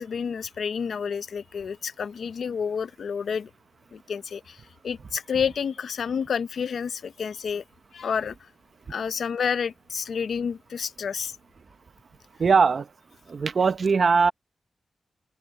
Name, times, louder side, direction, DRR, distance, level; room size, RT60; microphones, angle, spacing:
voice 1, 0.0-3.5 3.9-7.6 7.9-8.4 8.9-11.3, left 6 dB, 75° left, 0.6 m, -29 dB
voice 2, 12.4-12.9 13.3-14.3, right 5 dB, 50° right, 0.9 m, -20 dB
open air
wide cardioid pair, 135°, 0 cm